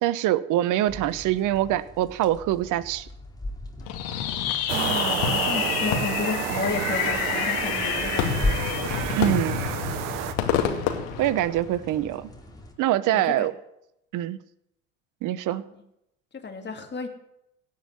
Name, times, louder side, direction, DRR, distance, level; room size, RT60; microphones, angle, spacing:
voice 1, 0.0-3.1 9.1-9.6 11.2-12.3 12.8-13.5 14.1-14.4 15.2-15.6, right 13 dB, 55° right, 17 dB, 1.0 m, -24 dB
sound 1, 0.9-12.7, left 1 dB, 10° left, 2.9 m, -38 dB
Fireworks, 3.9-12.0, left 9 dB, 70° left, 2.2 m, -28 dB
voice 2, 4.7-8.4 13.1-13.5 15.5-15.6 16.4-17.1, left 5 dB, 30° left, 4 dB, 2.8 m, -32 dB
sound 2, 4.7-10.3, right 11 dB, 70° right, 1.2 m, -30 dB
17.0 x 5.7 x 9.7 m, 0.82 s
hypercardioid pair, 70°, 38 cm